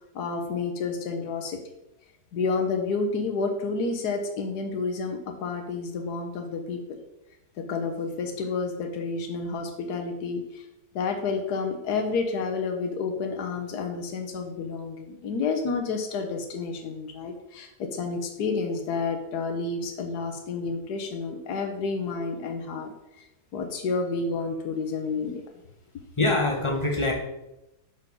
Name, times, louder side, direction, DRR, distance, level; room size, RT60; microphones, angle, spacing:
voice 1, 0.1-1.6 2.3-7.0 7.6-10.6 10.9-23.3 23.5-25.4, left 4 dB, 65° left, 4 dB, 1.5 m, -30 dB
voice 2, 26.2-27.1, left 2 dB, 20° left, 2 dB, 1.0 m, -24 dB
6.3 x 5.5 x 5.3 m, 0.90 s
omnidirectional pair, 1.9 m